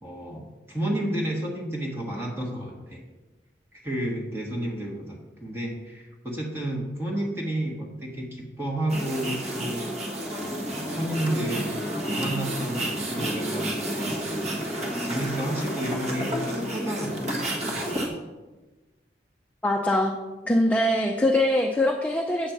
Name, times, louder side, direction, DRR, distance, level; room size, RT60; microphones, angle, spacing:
voice 1, 0.0-3.0 3.7-9.8 10.4-11.7 12.0-14.5 15.0-18.2, right 1 dB, 15° right, -2 dB, 1.3 m, -31 dB
sound 1, 8.9-18.1, right 1 dB, 40° right, 1.4 m, -30 dB
voice 2, 19.6-20.1 20.5-22.5, left 1 dB, 10° left, 1 dB, 0.5 m, -22 dB
8.8 x 4.3 x 7.1 m, 1.2 s
head